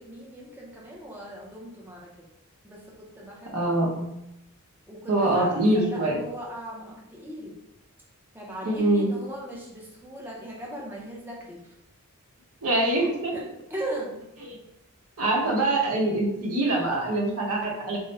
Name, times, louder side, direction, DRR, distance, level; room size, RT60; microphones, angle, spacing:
voice 1, 0.0-2.3 2.6-3.8 4.9-7.6 8.3-11.7 13.3-13.4 13.7-14.3, right 1 dB, 10° right, -4 dB, 0.6 m, -38 dB
voice 2, 3.5-4.1 5.1-6.2 8.6-9.1 12.6-13.3 14.4-14.6 15.2-18.0, right 1 dB, 80° right, -2 dB, 1.0 m, -24 dB
3.7 x 2.1 x 4.1 m, 0.86 s
head